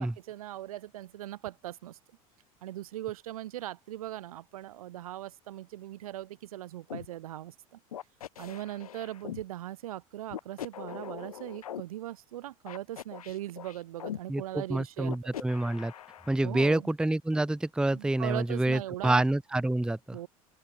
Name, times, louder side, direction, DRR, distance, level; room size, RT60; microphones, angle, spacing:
voice 1, 0.0-2.0 2.6-7.8 8.4-15.4 16.4-16.9 17.9-19.2 20.1-20.3, right 14 dB, 80° right, 2.7 m, -39 dB
sound 1, 6.9-7.1 7.9-9.4 10.3-11.8 12.7-14.2 15.0-16.4, left 10 dB, 85° left, 3.0 m, -41 dB
voice 2, 14.3-15.9 16.3-20.2, right 2 dB, 5° right, 0.7 m, -28 dB
open air
hypercardioid pair, 75°, 18 cm